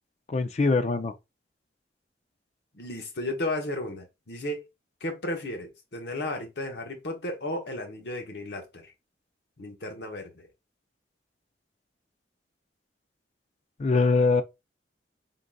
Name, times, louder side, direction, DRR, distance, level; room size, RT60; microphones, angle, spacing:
voice 1, 0.3-1.1 13.8-14.4, left 3 dB, 40° left, 0.4 m, -23 dB
voice 2, 2.7-4.6 5.0-8.9 9.6-10.5, left 1 dB, 65° left, 1.1 m, -34 dB
3.9 x 3.8 x 2.3 m
head